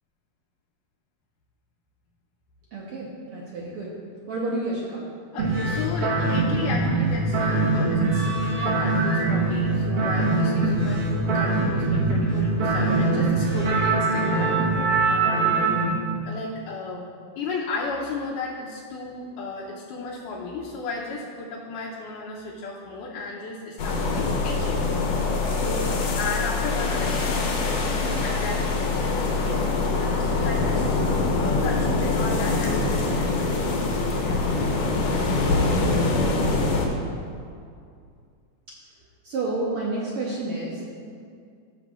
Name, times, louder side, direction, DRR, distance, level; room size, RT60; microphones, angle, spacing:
voice 1, 2.7-4.0 4.3-5.0 39.2-40.8, right 2 dB, 70° right, -5 dB, 1.4 m, -30 dB
voice 2, 5.3-17.1 17.4-24.9 25.1-30.8 31.4-34.4 34.7-34.8, left 3 dB, 80° left, -5 dB, 2.3 m, -34 dB
sound 1, 5.4-15.9, right 3 dB, 55° right, 1.8 m, -23 dB
sound 2, 23.8-36.9, left 3 dB, 65° left, 2.0 m, -24 dB
15.5 x 6.6 x 2.4 m, 2.3 s
omnidirectional pair, 3.7 m